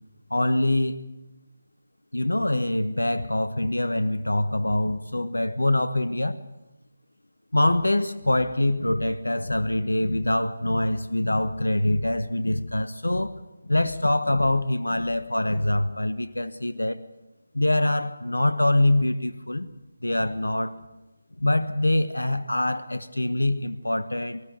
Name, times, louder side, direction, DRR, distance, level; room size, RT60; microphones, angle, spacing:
voice 1, 0.3-1.0 2.1-6.4 7.5-13.3 13.6-17.0 17.5-19.7 20.0-20.8 21.4-24.4, left 1 dB, 90° left, 1.1 m, -24 dB
24.5 x 14.0 x 9.4 m
figure-of-eight pair, 155°, 0 cm